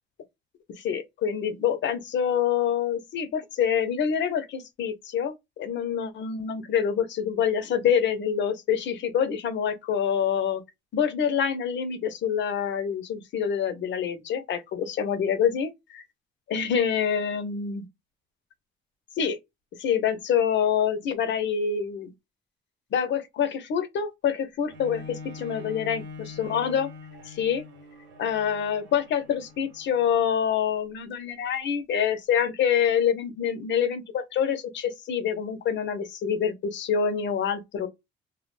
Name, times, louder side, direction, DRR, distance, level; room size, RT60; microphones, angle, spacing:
voice 1, 0.7-10.6 10.9-16.0 16.5-17.9 19.2-19.4 19.8-22.1 22.9-26.9 27.3-27.6 28.2-37.9, left 8 dB, 65° left, 0.7 m, -26 dB
Bowed string instrument, 24.7-30.3 31.0-31.1, left 4 dB, 70° right, 1.0 m, -44 dB
2.2 x 2.1 x 3.0 m
cardioid pair, 90°, 20 cm